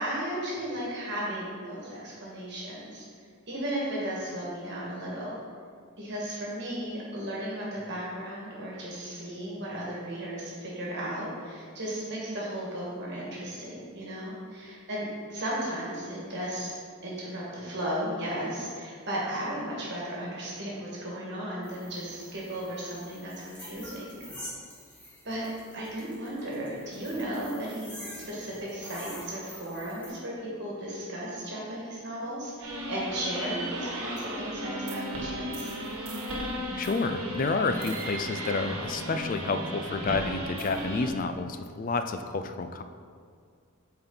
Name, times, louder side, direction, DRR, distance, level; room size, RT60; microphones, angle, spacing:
voice 1, 0.0-3.0 3.5-5.4 6.0-16.8 17.0-24.2 25.2-25.5 25.7-28.0 28.3-35.7, right 1 dB, 50° right, -5 dB, 1.7 m, -35 dB
sound 1, 21.6-30.1, equal, 5° left, 1.5 m, -47 dB
sound 2, 32.6-41.1, equal, 80° right, 1.3 m, -35 dB
voice 2, 36.8-42.8, left 3 dB, 40° left, 8 dB, 0.3 m, -30 dB
8.5 x 4.5 x 4.0 m, 2.1 s
head